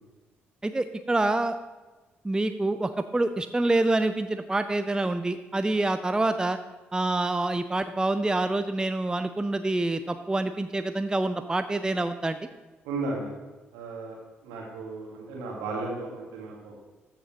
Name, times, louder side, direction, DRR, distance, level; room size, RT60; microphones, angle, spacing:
voice 1, 0.6-1.6 2.2-6.6 6.9-12.4, right 2 dB, 15° right, 10 dB, 0.5 m, -26 dB
voice 2, 12.8-13.3 13.7-14.2 14.4-16.8, right 3 dB, 70° right, -1 dB, 1.9 m, -34 dB
13.5 x 6.7 x 3.0 m, 1.2 s
figure-of-eight pair, 40°, 6 cm